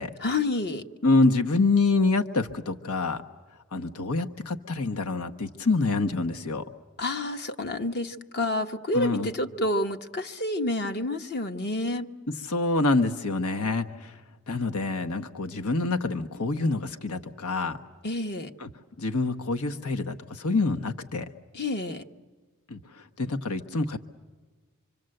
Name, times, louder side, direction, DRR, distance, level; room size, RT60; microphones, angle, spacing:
voice 1, 0.2-0.8 7.0-12.1 18.0-18.5 21.5-22.0, left 2 dB, 50° left, 6 dB, 1.2 m, -29 dB
voice 2, 1.0-3.2 3.7-6.7 8.9-9.3 12.3-14.2 14.5-17.8 18.6-18.7 19.0-21.3 22.7-24.0, left 3 dB, 75° left, 6 dB, 1.1 m, -26 dB
26.0 x 25.0 x 7.8 m, 1.4 s
head